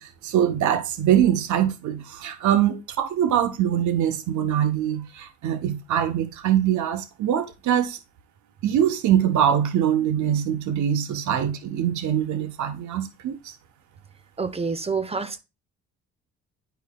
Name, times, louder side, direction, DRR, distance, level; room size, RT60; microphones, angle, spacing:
voice 1, 0.0-8.0 8.6-13.5, right 10 dB, 70° right, 0.9 m, -23 dB
voice 2, 14.4-15.4, right 4 dB, 20° right, 0.8 m, -27 dB
10.5 x 4.6 x 2.2 m
cardioid pair, 90°, 30 cm